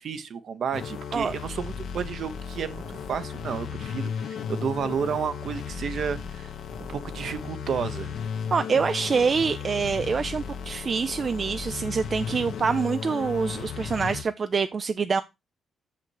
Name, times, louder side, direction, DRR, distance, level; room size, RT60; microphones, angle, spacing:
voice 1, 0.0-6.5 6.9-8.1, right 7 dB, 60° right, 0.9 m, -31 dB
sound 1, 0.7-14.2, left 7 dB, 80° left, 1.2 m, -35 dB
voice 2, 8.5-15.2, right 5 dB, 40° right, 0.4 m, -26 dB
6.5 x 5.8 x 4.7 m
cardioid pair, 110°, 0 cm